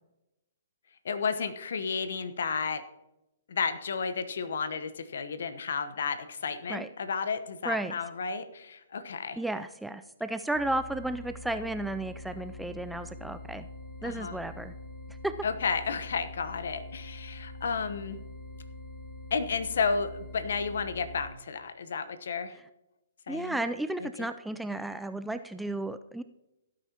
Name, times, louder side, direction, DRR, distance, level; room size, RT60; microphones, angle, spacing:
voice 1, 1.0-2.8 3.5-9.4 14.0-14.3 15.4-18.2 19.3-22.6 23.3-23.6 24.0-24.3, left 5 dB, 65° left, 11 dB, 1.0 m, -32 dB
voice 2, 7.6-8.0 9.4-13.7 14.0-14.7 15.1-15.3 23.3-26.2, right 2 dB, 5° right, 10 dB, 0.4 m, -33 dB
sound 1, 10.5-21.3, left 2 dB, 30° left, 2.6 m, -44 dB
16.5 x 9.2 x 2.9 m, 0.92 s
figure-of-eight pair, 130°, 0 cm